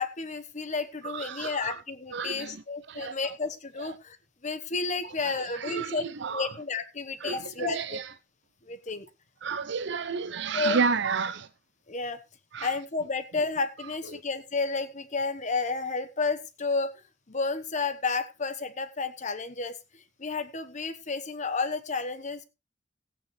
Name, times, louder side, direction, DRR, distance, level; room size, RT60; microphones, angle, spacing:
voice 1, 0.0-4.2 4.4-6.0 6.3-8.0 8.7-9.0 10.5-10.8 11.9-12.2 12.6-16.9 17.3-19.7 20.2-22.5, left 4 dB, 40° left, 1.1 m, -31 dB
voice 2, 1.0-1.8 2.1-2.6 2.9-3.3 3.8-4.0 5.0-6.5 7.2-8.1 9.4-11.5 12.5-12.8 14.1-14.2, right 5 dB, 65° right, 0.6 m, -32 dB
16.5 x 9.2 x 3.2 m
head